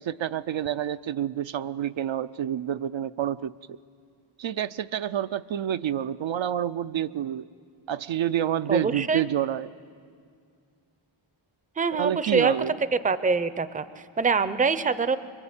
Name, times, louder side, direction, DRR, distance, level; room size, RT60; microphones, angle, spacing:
voice 1, 0.0-3.8 4.4-7.5 7.9-9.7 11.9-12.7, right 10 dB, 65° right, 12 dB, 0.6 m, -28 dB
voice 2, 8.7-9.2 11.8-12.7 13.0-15.2, right 4 dB, 15° right, 13 dB, 0.5 m, -25 dB
25.0 x 23.0 x 8.7 m, 2.2 s
wide cardioid pair, 150°, 50 cm